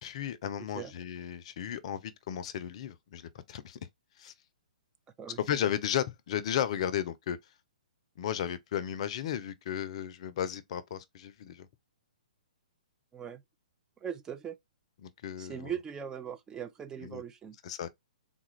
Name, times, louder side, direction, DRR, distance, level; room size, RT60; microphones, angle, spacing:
voice 1, 0.0-3.8 4.2-4.3 5.4-7.4 8.2-11.7 15.0-15.7 17.0-17.2 17.6-17.9, left 10 dB, 50° left, 0.6 m, -34 dB
voice 2, 14.0-14.6 15.4-17.6, right 8 dB, 15° right, 0.5 m, -39 dB
3.8 x 2.4 x 3.0 m
hypercardioid pair, 125°, 4 cm